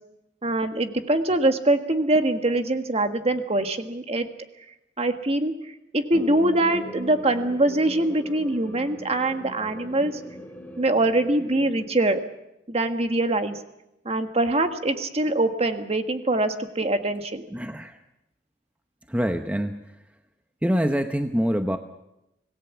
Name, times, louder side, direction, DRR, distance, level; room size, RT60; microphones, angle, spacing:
voice 1, 0.4-4.3 5.0-5.5 5.9-10.1 10.8-12.2 12.7-13.6 14.0-17.4, right 2 dB, 35° right, 7 dB, 1.6 m, -23 dB
sound 1, 6.1-11.9, equal, 10° left, 3.5 m, -40 dB
voice 2, 17.5-18.0 19.1-19.8 20.6-21.8, equal, 10° right, 6 dB, 0.9 m, -25 dB
25.5 x 18.5 x 7.2 m, 0.89 s
head